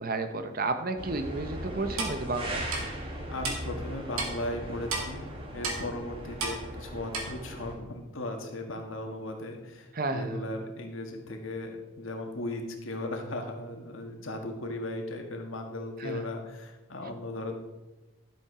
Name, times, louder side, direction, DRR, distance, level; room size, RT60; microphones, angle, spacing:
voice 1, 0.0-2.7 9.9-10.4 16.0-16.2, right 3 dB, 45° right, 8 dB, 0.8 m, -32 dB
sound 1, 1.0-7.8, right 1 dB, 25° right, 1.7 m, -39 dB
Clock, 2.0-2.1 2.7-2.8 3.4-3.6 4.2-4.3 4.9-5.0 5.6-5.8 6.4-6.6 7.1-7.2, right 3 dB, 80° right, 2.1 m, -31 dB
voice 2, 3.3-5.3 5.5-17.6, left 1 dB, 70° left, 3 dB, 1.6 m, -37 dB
12.0 x 7.4 x 4.9 m, 1.1 s
head